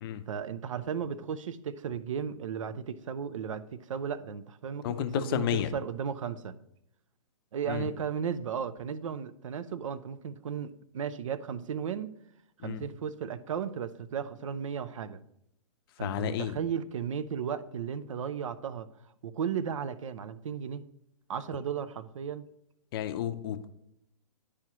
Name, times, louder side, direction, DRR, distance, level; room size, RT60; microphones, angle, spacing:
voice 1, 0.3-4.9 5.2-6.5 7.5-12.1 12.6-15.2 16.0-18.9 19.2-20.8 21.3-22.5, right 7 dB, 70° right, 13 dB, 0.5 m, -35 dB
voice 2, 4.8-5.7 7.7-7.9 12.6-12.8 16.0-16.6 22.9-23.7, left 11 dB, 45° left, 10 dB, 0.5 m, -31 dB
10.5 x 4.9 x 2.9 m, 0.79 s
hypercardioid pair, 120°, 17 cm